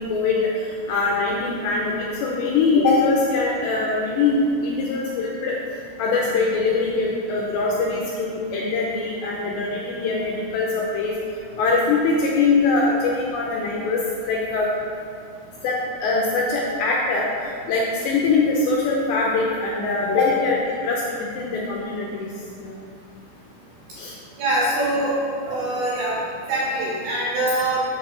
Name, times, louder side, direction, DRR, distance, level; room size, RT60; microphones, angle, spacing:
voice 1, 0.0-5.6 6.0-11.1 11.6-14.7 15.6-22.3 22.6-22.7 24.0-24.2, left 3 dB, 80° left, -3 dB, 2.6 m, -22 dB
voice 2, 24.4-25.2 25.5-26.2 26.5-27.8, right 1 dB, 65° right, -6 dB, 2.6 m, -23 dB
7.9 x 6.3 x 5.0 m, 2.4 s
omnidirectional pair, 5.8 m